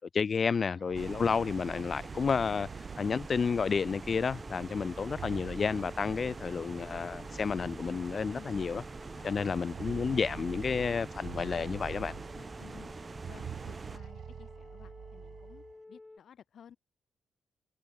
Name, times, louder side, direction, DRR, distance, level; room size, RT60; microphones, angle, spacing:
voice 1, 0.1-2.7 3.0-8.8 9.2-12.1, left 5 dB, 50° left, 0.4 m, -31 dB
sound 1, 0.8-3.6 4.9-6.6 7.6-7.7 8.1-8.2 9.4-12.6 13.1-15.7, right 9 dB, 70° right, 0.3 m, -46 dB
sound 2, 1.0-14.0, right 4 dB, 35° right, 1.6 m, -44 dB
sound 3, 4.4-16.2, left 2 dB, 25° left, 1.0 m, -53 dB
voice 2, 9.1-9.6 12.0-16.8, left 8 dB, 65° left, 1.6 m, -55 dB
cardioid pair, 65°, 0 cm